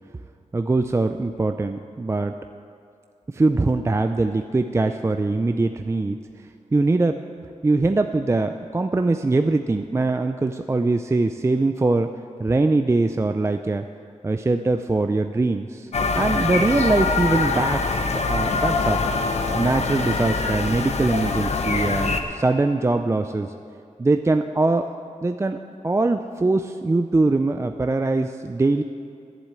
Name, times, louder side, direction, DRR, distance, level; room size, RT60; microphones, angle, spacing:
voice 1, 0.5-2.3 3.3-6.2 6.7-7.2 7.6-12.1 12.4-13.8 14.2-15.9 16.2-18.0 18.3-19.0 19.5-23.5 24.0-25.0 25.2-28.8, right 3 dB, 20° right, 7 dB, 0.4 m, -22 dB
sound 1, 15.9-22.2, left 4 dB, 60° left, 0.9 m, -24 dB
11.5 x 7.3 x 8.3 m, 2.5 s
wide cardioid pair, 90°, 13 cm